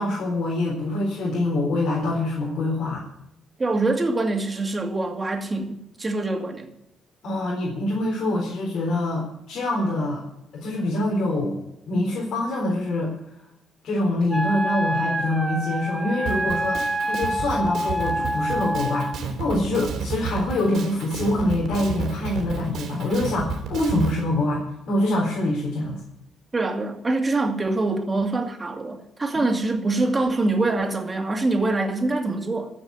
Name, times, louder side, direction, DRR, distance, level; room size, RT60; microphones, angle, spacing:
voice 1, 0.0-3.0 7.2-10.2 10.5-13.2 13.8-26.0 29.3-29.4, left 1 dB, 70° left, -3 dB, 4.0 m, -25 dB
voice 2, 3.6-6.7 26.5-32.7, right 2 dB, 25° right, 3 dB, 2.4 m, -24 dB
Wind instrument woodwind instrument, 14.3-19.2, right 1 dB, 5° right, 1.7 m, -27 dB
Drum kit, 16.2-24.2, right 5 dB, 75° right, 3.2 m, -31 dB
15.0 x 6.2 x 9.3 m, 0.81 s
cardioid pair, 90°, 0 cm